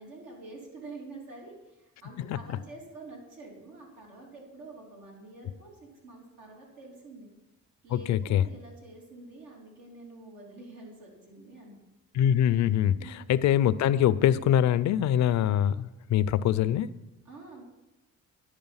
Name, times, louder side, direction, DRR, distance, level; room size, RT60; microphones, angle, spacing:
voice 1, 0.0-7.3 7.8-11.8 12.9-13.3 17.2-17.8, right 2 dB, 85° right, -2 dB, 2.8 m, -47 dB
voice 2, 7.9-8.4 12.1-16.9, left 10 dB, 65° left, 16 dB, 0.5 m, -24 dB
10.5 x 5.1 x 5.6 m, 1.0 s
cardioid pair, 90°, 30 cm